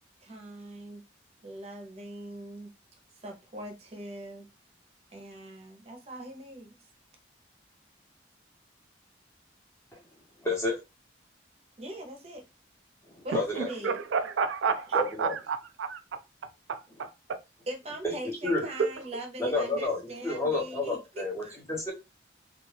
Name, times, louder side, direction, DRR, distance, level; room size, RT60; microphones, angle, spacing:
voice 1, 0.2-1.0 1.4-2.7 3.1-4.5 5.1-6.8 11.8-12.4 13.2-14.0 14.9-15.0 17.7-21.6, right 1 dB, 35° right, 0.6 m, -41 dB
voice 2, 10.4-10.8 13.1-13.7 14.9-15.3 18.0-18.1 18.4-18.6 19.4-21.4 21.7-21.9, left 2 dB, 15° left, 0.7 m, -30 dB
voice 3, 13.6-16.0 16.7-17.1, right 5 dB, 80° right, 0.4 m, -30 dB
2.3 x 2.3 x 3.1 m
head